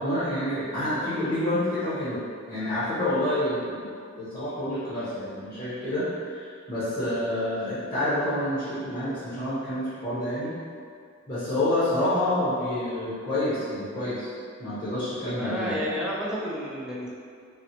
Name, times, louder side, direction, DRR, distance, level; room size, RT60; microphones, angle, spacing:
voice 1, 0.0-3.9 4.2-10.6 11.3-14.3 14.6-15.8, left 1 dB, 20° left, -12 dB, 0.7 m, -28 dB
voice 2, 15.3-17.1, equal, 5° right, -6 dB, 0.4 m, -31 dB
3.8 x 2.1 x 2.8 m, 2.2 s
head